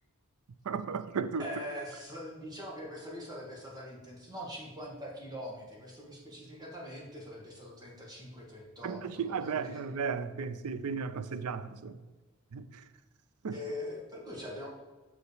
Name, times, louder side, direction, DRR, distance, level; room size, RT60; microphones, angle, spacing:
voice 1, 0.7-1.4 8.8-12.0 12.5-12.8 13.4-13.6, right 5 dB, 75° right, 0.4 m, -35 dB
voice 2, 1.4-9.8 13.5-14.7, left 1 dB, 20° right, 1.7 m, -43 dB
7.0 x 6.4 x 3.4 m
head